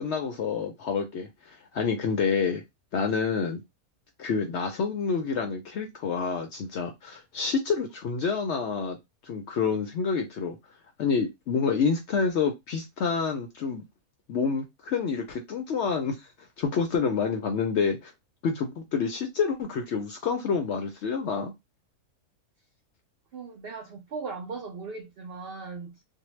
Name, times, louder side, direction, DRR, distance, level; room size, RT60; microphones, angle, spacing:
voice 1, 0.0-2.6 2.9-3.6 4.2-9.0 9.2-10.6 11.0-13.8 14.3-16.2 16.6-18.1 18.4-21.5, left 5 dB, 65° left, 0.7 m, -28 dB
voice 2, 23.3-26.0, right 4 dB, 70° right, 0.5 m, -38 dB
2.6 x 2.1 x 3.0 m
omnidirectional pair, 1.5 m